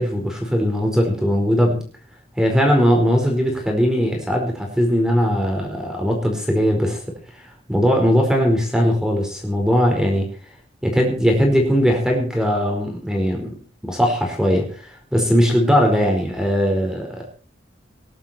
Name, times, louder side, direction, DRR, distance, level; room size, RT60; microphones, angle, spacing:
voice 1, 0.0-1.8 2.4-7.4 7.7-10.3 10.8-13.6 13.9-17.3, equal, 5° right, 2 dB, 4.6 m, -19 dB
20.5 x 11.5 x 4.4 m, 0.40 s
head